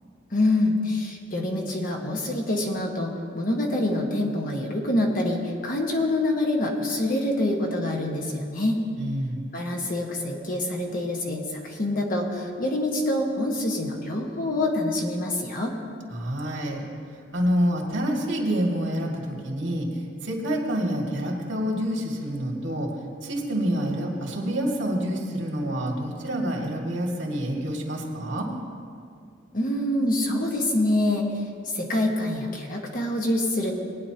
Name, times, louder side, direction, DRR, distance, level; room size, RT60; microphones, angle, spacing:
voice 1, 0.3-8.7 9.5-15.7 29.5-31.2 31.7-33.7, left 1 dB, 45° left, 0 dB, 1.5 m, -26 dB
voice 2, 9.0-9.4 16.1-16.8 17.3-22.9 23.2-28.5, equal, 80° right, -1 dB, 2.1 m, -27 dB
19.5 x 9.7 x 2.9 m, 2.3 s
head